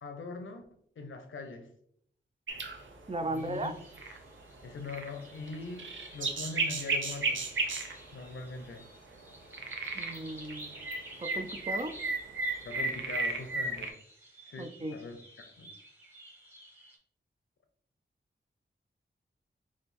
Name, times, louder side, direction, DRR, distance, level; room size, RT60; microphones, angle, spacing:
voice 1, 0.0-0.7 1.0-1.7 3.2-3.7 4.6-7.5 8.1-8.9 12.6-14.0 14.5-15.2 15.6-15.7, left 3 dB, 80° left, 6 dB, 0.6 m, -42 dB
sound 1, 2.5-2.9 3.3-3.4 3.9-4.2 4.9-5.2 5.5-8.0 9.5-10.2 10.4-13.9, right 3 dB, 75° right, 0.6 m, -33 dB
voice 2, 3.1-3.7 9.9-10.8 11.2-11.9 14.6-15.0, right 1 dB, 30° right, 8 dB, 0.3 m, -36 dB
sound 2, 3.4-17.0, right 1 dB, 10° right, 1.1 m, -52 dB
3.5 x 2.5 x 4.1 m, 0.68 s
wide cardioid pair, 90°, 20 cm